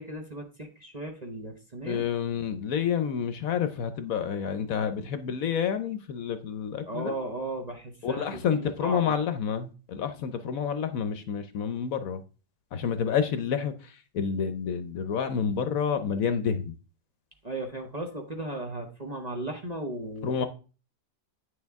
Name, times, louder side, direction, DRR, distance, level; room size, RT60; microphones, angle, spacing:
voice 1, 0.0-2.0 6.9-8.3 8.6-9.1 17.4-20.3, right 2 dB, 30° right, 0.9 m, -36 dB
voice 2, 1.8-7.2 8.0-12.2 12.7-16.7 20.2-20.5, left 7 dB, 65° left, 1.1 m, -29 dB
9.2 x 6.6 x 3.5 m
omnidirectional pair, 1.7 m